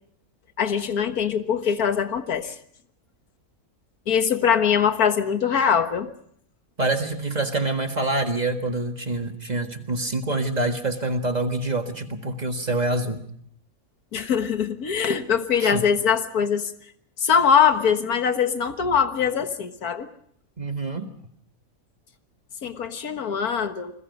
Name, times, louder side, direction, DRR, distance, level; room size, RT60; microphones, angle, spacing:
voice 1, 0.6-2.5 4.1-6.1 14.1-16.7 17.2-20.1 22.6-23.9, left 7 dB, 90° left, 8 dB, 1.9 m, -22 dB
voice 2, 6.8-13.3 15.6-15.9 20.6-21.1, right 2 dB, 30° right, 5 dB, 1.8 m, -26 dB
28.5 x 21.5 x 5.4 m, 0.65 s
omnidirectional pair, 1.5 m